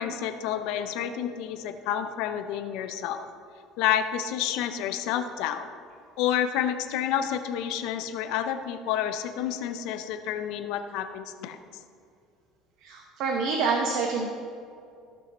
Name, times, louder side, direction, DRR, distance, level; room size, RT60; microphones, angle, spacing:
voice 1, 0.0-3.3 3.8-5.7 6.2-11.6, left 10 dB, 75° left, 9 dB, 0.7 m, -29 dB
voice 2, 12.8-14.3, right 4 dB, 60° right, 1 dB, 1.0 m, -27 dB
15.5 x 5.6 x 4.2 m, 2.4 s
cardioid pair, 125°, 0 cm